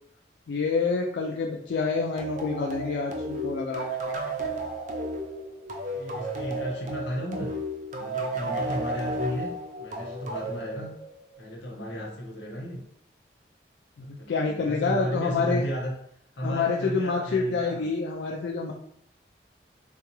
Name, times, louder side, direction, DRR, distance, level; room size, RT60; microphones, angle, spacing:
voice 1, 0.5-3.9 14.0-15.6 16.4-18.7, left 4 dB, 70° left, 0 dB, 0.3 m, -27 dB
sound 1, 2.2-11.4, right 1 dB, 45° right, 0.5 m, -33 dB
voice 2, 5.9-7.5 7.9-9.5 9.8-10.9 11.4-12.8 14.2-15.9 16.3-17.8, equal, 90° left, -1 dB, 1.0 m, -34 dB
3.7 x 2.3 x 3.0 m, 0.71 s
head